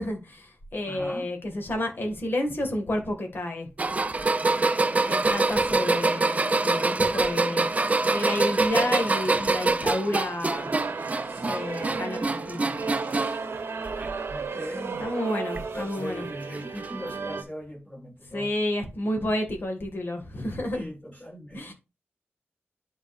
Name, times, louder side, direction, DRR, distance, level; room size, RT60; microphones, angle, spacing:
voice 1, 0.0-3.7 5.1-7.7 8.1-10.7 11.4-12.8 15.0-16.3 18.3-20.9 21.5-21.7, left 1 dB, 55° left, 1.8 m, -30 dB
voice 2, 0.8-1.3 14.3-15.0 15.7-18.5 20.7-21.7, equal, 30° left, 4.3 m, -39 dB
sound 1, 3.8-13.5 13.8-14.4 15.6-15.7 16.8-16.9, right 3 dB, 35° right, 0.5 m, -25 dB
sound 2, 10.5-17.4, right 4 dB, 70° right, 0.9 m, -34 dB
10.5 x 4.0 x 2.4 m
wide cardioid pair, 100°, 4 cm